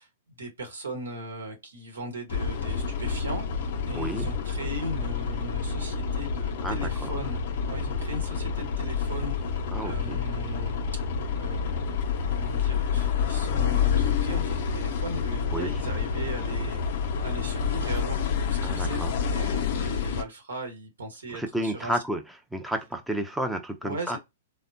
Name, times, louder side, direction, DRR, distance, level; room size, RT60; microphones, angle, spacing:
voice 1, 0.0-10.8 11.3-21.9 23.8-24.2, right 1 dB, 80° right, 1.1 m, -38 dB
sound 1, 2.3-20.2, left 6 dB, 55° left, 0.5 m, -28 dB
voice 2, 3.9-4.3 6.6-7.1 9.7-10.2 15.5-15.8 18.6-19.1 21.3-22.2 22.5-24.2, right 1 dB, ahead, 0.5 m, -31 dB
3.5 x 2.1 x 2.7 m
hypercardioid pair, 110°, 0 cm